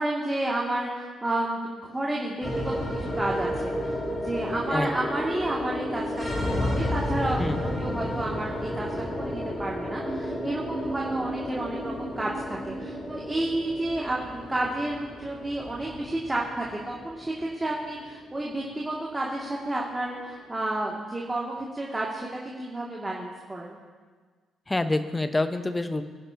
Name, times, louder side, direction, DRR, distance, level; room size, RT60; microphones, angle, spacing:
voice 1, 0.0-2.7 3.0-23.8, right 1 dB, 15° right, -4 dB, 2.3 m, -31 dB
sound 1, 2.4-20.8, equal, 35° left, 4.5 m, -32 dB
voice 2, 24.7-26.0, left 2 dB, 20° left, 10 dB, 1.0 m, -27 dB
24.0 x 11.0 x 2.9 m, 1.5 s
figure-of-eight pair, 45°, 0 cm